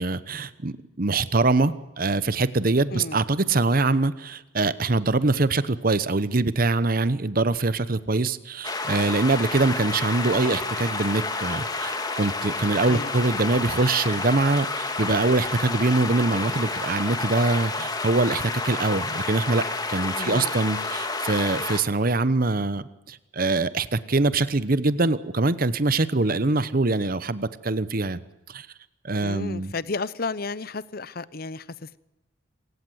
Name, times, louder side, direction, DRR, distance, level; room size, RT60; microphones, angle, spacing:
voice 1, 0.0-19.6 19.9-28.2 28.5-28.7 29.0-29.7, right 3 dB, 45° right, 1.0 m, -23 dB
sound 1, 8.6-21.8, left 3 dB, 20° left, 2.3 m, -30 dB
voice 2, 20.2-20.5 29.2-32.0, left 3 dB, 50° left, 0.8 m, -33 dB
26.5 x 16.0 x 8.0 m
head